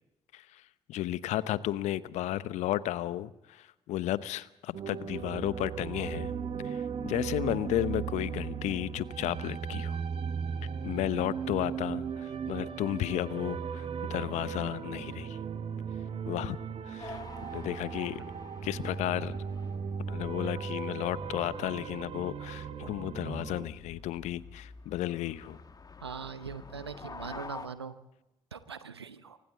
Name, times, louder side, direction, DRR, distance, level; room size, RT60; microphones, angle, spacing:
voice 1, 0.9-6.3 6.6-10.0 10.8-15.4 16.3-16.6 16.9-17.2 17.5-18.2 18.6-19.3 20.1-25.6, left 14 dB, 60° left, 17 dB, 0.9 m, -33 dB
sound 1, 4.7-23.7, right 6 dB, 50° right, 1.8 m, -37 dB
sound 2, 17.0-27.7, left 4 dB, 30° left, 2.0 m, -49 dB
voice 2, 26.0-27.9 28.5-29.4, right 6 dB, 85° right, 14 dB, 0.9 m, -41 dB
29.0 x 25.0 x 3.9 m, 0.93 s
figure-of-eight pair, 40°, 13 cm